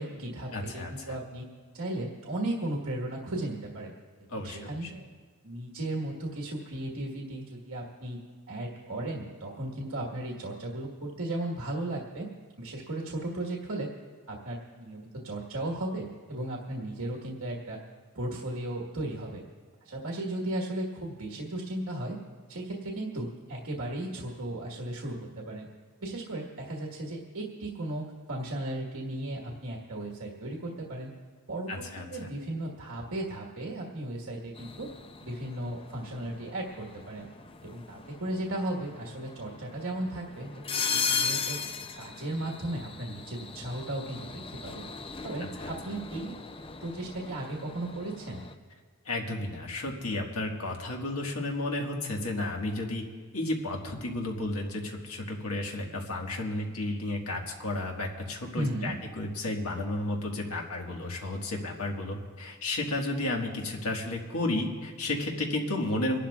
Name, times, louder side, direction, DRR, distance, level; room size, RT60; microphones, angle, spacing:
voice 1, 0.0-1.4 1.7-3.9 4.3-5.1 5.4-8.2 8.5-12.3 12.6-13.9 14.3-17.8 18.1-19.4 19.8-22.2 22.5-25.7 26.0-31.1 31.5-34.9 35.2-37.3 37.6-41.6 41.9-44.9 45.2-46.4 46.8-48.4 58.5-58.9, right 1 dB, 75° right, -2 dB, 1.6 m, -35 dB
voice 2, 0.5-1.2 4.3-4.9 31.7-32.3 45.6-45.7 49.0-53.0 53.3-66.2, left 2 dB, 85° left, 1 dB, 1.7 m, -32 dB
sound 1, 34.6-48.5, left 6 dB, 25° left, 0.5 m, -37 dB
30.0 x 12.0 x 2.4 m, 1.5 s
head